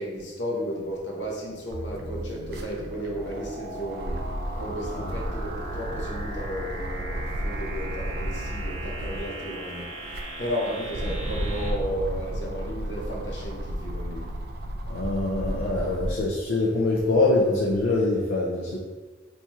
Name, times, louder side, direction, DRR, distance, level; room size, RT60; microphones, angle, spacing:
voice 1, 0.0-14.3, equal, 70° left, -3 dB, 0.9 m, -34 dB
sound 1, 1.2-1.3 1.6-9.4 9.9-16.4 16.9-18.0, right 1 dB, 55° right, 0.3 m, -33 dB
sound 2, 1.7-11.7, right 1 dB, 90° right, 0.7 m, -38 dB
voice 2, 14.9-18.8, left 2 dB, 85° left, -4 dB, 0.5 m, -24 dB
4.2 x 2.8 x 2.3 m, 1.3 s
head